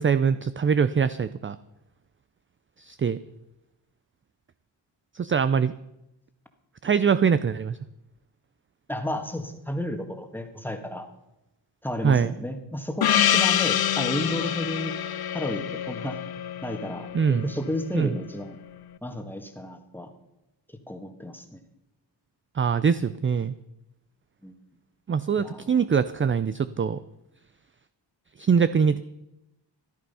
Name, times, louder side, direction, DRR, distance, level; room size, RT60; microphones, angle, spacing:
voice 1, 0.0-1.6 2.8-3.2 5.1-5.7 6.8-7.8 12.0-12.3 17.1-17.5 17.9-18.1 22.6-23.5 25.1-27.0 28.4-29.0, right 6 dB, 30° right, 14 dB, 0.4 m, -23 dB
voice 2, 8.9-11.1 11.8-14.9 15.3-16.2 16.6-18.6 19.0-20.1 20.9-21.6 24.4-24.6 25.4-25.8, left 1 dB, 5° left, 5 dB, 1.7 m, -32 dB
Gong, 13.0-17.8, left 10 dB, 55° left, 0.6 m, -26 dB
14.5 x 11.5 x 5.6 m, 0.91 s
cardioid pair, 90°, 45 cm